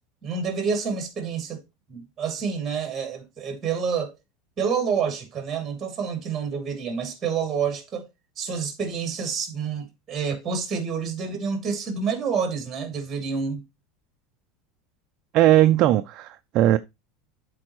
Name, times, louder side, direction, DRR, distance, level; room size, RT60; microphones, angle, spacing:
voice 1, 0.2-1.6 1.9-4.1 4.6-8.1 8.4-13.6, right 6 dB, 15° right, 2.5 m, -28 dB
voice 2, 15.3-16.8, right 13 dB, 40° right, 0.4 m, -18 dB
12.0 x 4.5 x 3.0 m
supercardioid pair, 170°, 0 cm